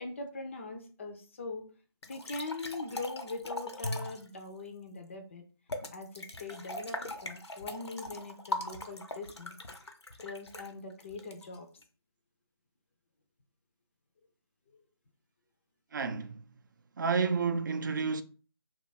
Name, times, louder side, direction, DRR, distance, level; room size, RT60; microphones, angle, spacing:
voice 1, 0.0-1.6 2.1-5.4 5.9-9.6 10.2-11.7 14.7-14.8, left 3 dB, 30° left, 0.5 m, -42 dB
sound 1, 2.0-4.3 5.7-11.8, left 1 dB, 85° left, 0.8 m, -40 dB
voice 2, 15.9-16.4 17.0-18.2, right 5 dB, 45° right, 0.4 m, -30 dB
2.9 x 2.4 x 4.0 m
figure-of-eight pair, 155°, 14 cm